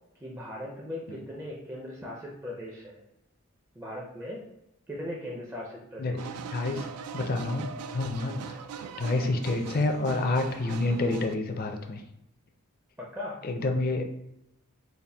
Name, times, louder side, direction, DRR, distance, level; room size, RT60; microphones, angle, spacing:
voice 1, 0.2-3.0 3.8-4.4 4.9-6.4 13.0-13.4, left 1 dB, 10° right, -3 dB, 0.4 m, -39 dB
voice 2, 6.0-6.9 7.1-7.7 7.9-8.6 9.0-12.0 13.4-14.0, left 2 dB, 40° left, 5 dB, 0.4 m, -28 dB
sound 1, 6.2-11.3, right 6 dB, 85° right, 0.3 m, -41 dB
4.1 x 2.1 x 3.4 m, 0.86 s
head